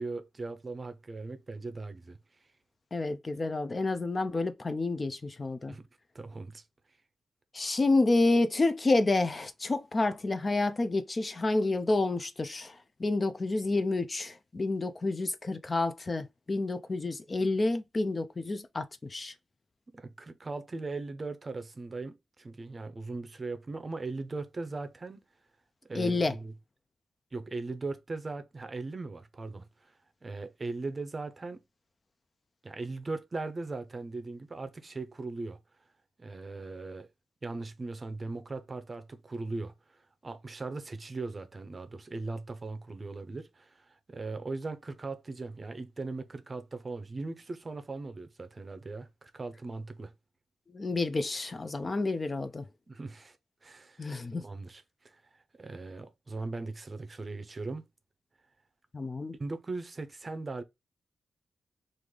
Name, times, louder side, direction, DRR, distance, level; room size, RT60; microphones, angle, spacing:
voice 1, 0.0-2.2 5.6-5.9 6.1-6.6 19.9-25.2 25.9-26.5 27.3-29.9 30.2-31.6 32.6-35.6 36.2-37.1 37.4-50.1 52.9-53.4 53.6-54.1 54.4-55.2 55.6-57.8 59.4-60.6, right 3 dB, 30° right, 0.6 m, -39 dB
voice 2, 2.9-5.7 7.5-19.3 25.9-26.4 50.7-52.7 54.0-54.4 58.9-59.3, left 2 dB, 30° left, 0.4 m, -29 dB
3.2 x 2.5 x 3.7 m
wide cardioid pair, 105°, 0 cm